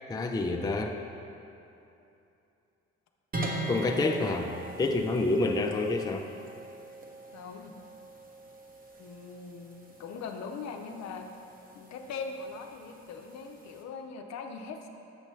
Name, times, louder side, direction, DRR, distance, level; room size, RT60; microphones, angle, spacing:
voice 1, 0.1-1.0 3.7-4.5 4.8-6.3, left 2 dB, 15° left, 3 dB, 0.5 m, -28 dB
sound 1, 3.3-13.8, right 1 dB, 30° right, 1.0 m, -42 dB
voice 2, 7.3-7.7 9.0-11.3 11.7-14.9, left 5 dB, 60° left, 4 dB, 0.6 m, -41 dB
7.6 x 5.2 x 3.1 m, 2.8 s
supercardioid pair, 60°, 31 cm